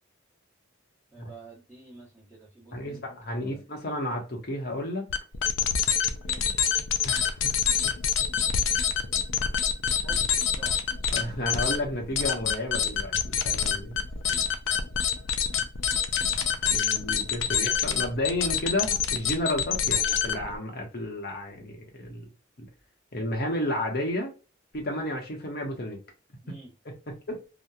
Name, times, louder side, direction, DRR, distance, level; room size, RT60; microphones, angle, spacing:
voice 1, 1.1-3.0 3.3-3.6 6.2-6.7 10.0-10.8 14.3-14.5 26.4-26.7, right 3 dB, 10° right, 1.1 m, -49 dB
voice 2, 2.7-5.1 7.0-7.5 7.8-7.9 11.1-14.0 16.7-22.3 22.6-22.7 23.1-24.3 24.7-26.0 26.8-26.9 27.3-27.4, left 1 dB, 50° left, 0.9 m, -32 dB
sound 1, 5.1-20.6, left 7 dB, 80° left, 0.4 m, -26 dB
2.8 x 2.2 x 2.3 m
head